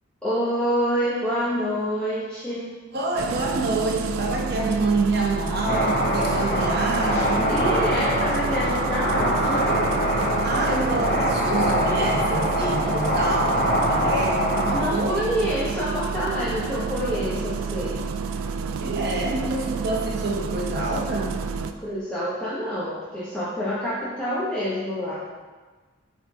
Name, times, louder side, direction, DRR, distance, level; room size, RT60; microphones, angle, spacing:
voice 1, 0.2-2.7 7.5-9.6 14.7-18.0 21.8-25.1, equal, 5° left, -11 dB, 0.9 m, -27 dB
voice 2, 2.9-7.5 10.4-15.5 18.8-21.4, right 2 dB, 50° right, -2 dB, 1.1 m, -27 dB
Engine starting, 3.2-21.7, right 5 dB, 85° right, 0.4 m, -30 dB
sound 1, 5.7-14.8, equal, 40° left, 1.1 m, -23 dB
7.8 x 3.8 x 3.7 m, 1.4 s
head